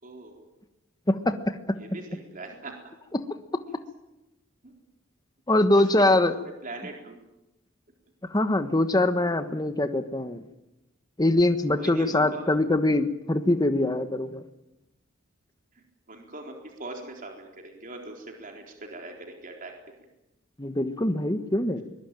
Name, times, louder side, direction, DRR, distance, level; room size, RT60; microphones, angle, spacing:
voice 1, 0.0-0.5 1.8-2.7 4.6-4.7 6.1-7.2 9.5-9.6 11.8-12.5 15.8-16.5 16.8-19.7, right 2 dB, 45° right, 2 dB, 4.0 m, -41 dB
voice 2, 5.5-6.3 8.3-10.5 11.2-14.4 20.6-21.8, left 1 dB, 20° left, 9 dB, 1.3 m, -23 dB
23.0 x 21.5 x 9.1 m, 0.96 s
head